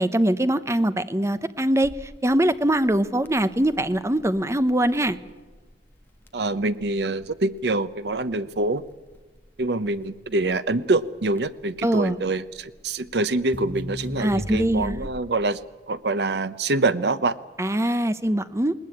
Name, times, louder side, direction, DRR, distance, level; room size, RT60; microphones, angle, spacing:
voice 1, 0.0-5.2 11.8-12.2 14.2-15.1 17.6-18.7, right 1 dB, 15° right, 12 dB, 0.8 m, -22 dB
Crackle, 1.8-15.4, equal, 10° left, 1.5 m, -40 dB
voice 2, 6.3-8.8 9.6-15.6 15.9-17.4, right 2 dB, 65° right, 14 dB, 0.8 m, -25 dB
20.0 x 19.5 x 8.6 m, 1.2 s
head